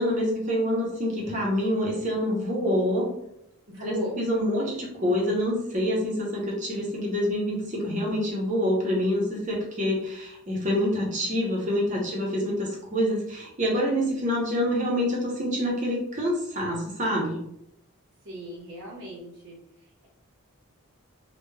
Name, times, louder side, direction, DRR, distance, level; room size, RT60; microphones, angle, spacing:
voice 1, 0.0-3.1 3.8-17.4, equal, 35° right, -3 dB, 0.7 m, -26 dB
voice 2, 3.7-4.2 4.6-4.8 18.2-20.1, equal, 65° right, -6 dB, 0.8 m, -38 dB
3.1 x 2.2 x 2.2 m, 0.76 s
head